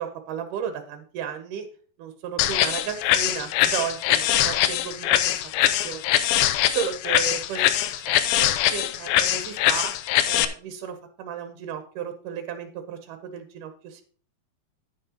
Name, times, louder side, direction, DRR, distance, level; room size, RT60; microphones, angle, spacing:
voice 1, 0.0-1.7 2.0-5.4 5.8-6.1 6.7-10.0 10.3-14.0, right 8 dB, 70° right, 7 dB, 2.1 m, -34 dB
sound 1, 2.4-10.5, left 12 dB, 80° left, 2.3 m, -22 dB
10.5 x 10.0 x 2.9 m, 0.44 s
omnidirectional pair, 4.4 m